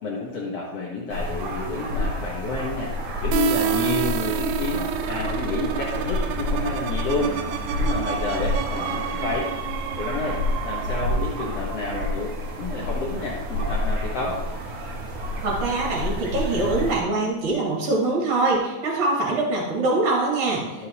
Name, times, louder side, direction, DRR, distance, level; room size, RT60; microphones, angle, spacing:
voice 1, 0.0-2.9 3.2-7.4 7.8-9.5 10.0-14.4 20.8-20.9, left 3 dB, 85° left, -5 dB, 1.3 m, -29 dB
sound 1, 1.1-17.0, left 1 dB, 65° right, 1.4 m, -29 dB
sound 2, 3.3-12.9, right 12 dB, 85° right, 2.4 m, -30 dB
voice 2, 15.4-20.9, right 2 dB, 45° right, -4 dB, 3.1 m, -23 dB
12.5 x 6.4 x 2.9 m, 1.1 s
omnidirectional pair, 4.8 m